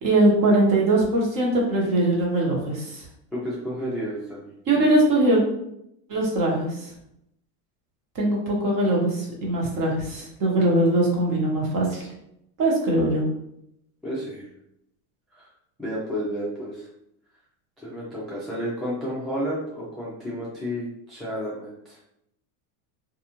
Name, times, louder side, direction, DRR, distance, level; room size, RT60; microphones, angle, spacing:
voice 1, 0.0-3.0 4.7-5.4 6.1-6.7 8.1-12.0 12.6-13.2, right 1 dB, 45° right, -2 dB, 1.1 m, -21 dB
voice 2, 3.3-4.5 14.0-14.5 15.3-15.4 15.8-16.9 17.8-22.0, equal, ahead, -6 dB, 0.3 m, -31 dB
2.5 x 2.3 x 2.9 m, 0.77 s
supercardioid pair, 125°, 45 cm